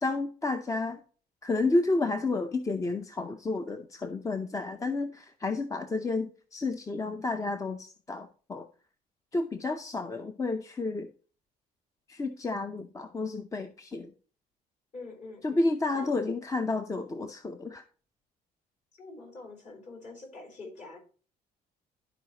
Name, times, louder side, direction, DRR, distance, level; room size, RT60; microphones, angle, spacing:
voice 1, 0.0-1.0 1.4-8.7 9.3-11.1 12.1-14.1 15.4-17.8, left 3 dB, 20° left, 0.5 m, -31 dB
voice 2, 14.9-15.7 15.9-16.1 18.9-21.0, left 3 dB, 45° left, 3.7 m, -45 dB
12.0 x 4.8 x 2.9 m
cardioid pair, 110°, 17 cm